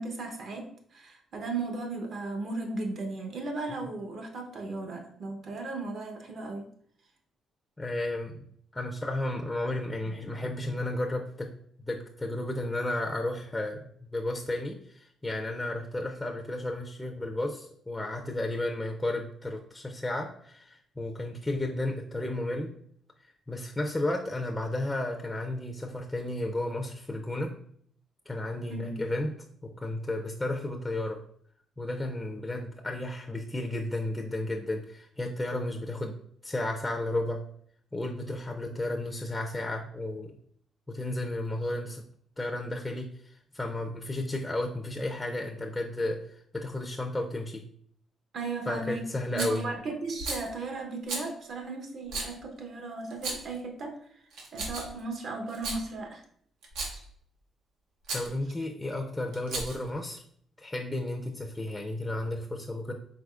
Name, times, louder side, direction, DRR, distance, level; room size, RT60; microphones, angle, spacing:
voice 1, 0.0-6.7 10.0-10.7 28.7-29.0 48.3-49.1 49.3-53.9 54.5-56.2, right 3 dB, 55° right, 3 dB, 0.9 m, -36 dB
voice 2, 7.8-8.4 8.7-11.5 11.8-22.7 23.5-27.5 28.3-29.3 29.6-31.2 31.8-36.2 36.4-37.4 37.9-40.4 40.9-42.1 42.4-47.6 48.7-49.6 58.1-60.2 60.6-62.9, left 1 dB, 10° left, 2 dB, 0.5 m, -33 dB
Rattle, 49.4-49.6 50.2-50.5 51.1-51.3 52.1-52.3 53.1-53.6 54.3-55.0 55.5-55.8 56.6-57.0 58.0-58.3 59.3-59.9, right 3 dB, 85° right, 0.9 m, -35 dB
4.8 x 3.7 x 2.4 m, 0.64 s
cardioid pair, 90°, 0 cm